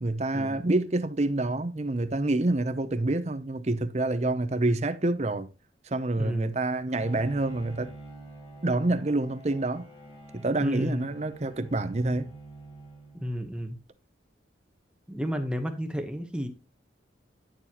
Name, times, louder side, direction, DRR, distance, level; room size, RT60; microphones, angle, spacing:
voice 1, 0.0-5.5 5.8-7.9 8.6-9.9 10.3-12.3, right 2 dB, 35° right, 0.7 m, -27 dB
voice 2, 6.2-6.5 10.6-11.1 13.1-13.8 15.1-16.5, equal, 5° right, 1.0 m, -31 dB
Bowed string instrument, 6.9-13.6, right 2 dB, 30° left, 2.0 m, -47 dB
10.0 x 7.0 x 3.0 m
head